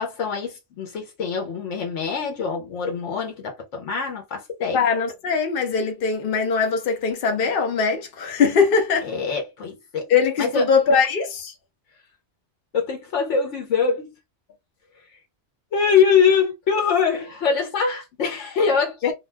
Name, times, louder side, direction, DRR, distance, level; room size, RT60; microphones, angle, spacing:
voice 1, 0.0-4.8 9.0-10.1 10.4-10.6 12.7-14.1 15.7-19.1, left 6 dB, 90° left, 1.2 m, -23 dB
voice 2, 4.7-9.1 10.1-11.5 19.0-19.1, left 5 dB, 55° left, 0.9 m, -21 dB
2.4 x 2.3 x 3.2 m
omnidirectional pair, 1.2 m